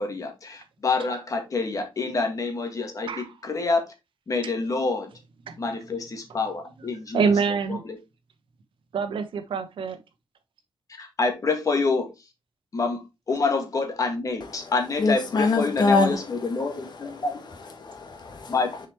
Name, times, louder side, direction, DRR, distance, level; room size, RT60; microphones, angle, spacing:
voice 1, 0.0-3.9 4.3-5.1 5.6-7.3 7.7-8.0 11.0-12.1 12.7-13.0 13.3-17.3 18.5-18.9, left 3 dB, 40° left, 1.9 m, -27 dB
voice 2, 7.1-7.8 8.9-10.0, right 5 dB, 75° right, 1.1 m, -25 dB
voice 3, 14.4-18.9, left 3 dB, 55° left, 1.5 m, -27 dB
6.7 x 4.9 x 3.1 m
wide cardioid pair, 125°, 9 cm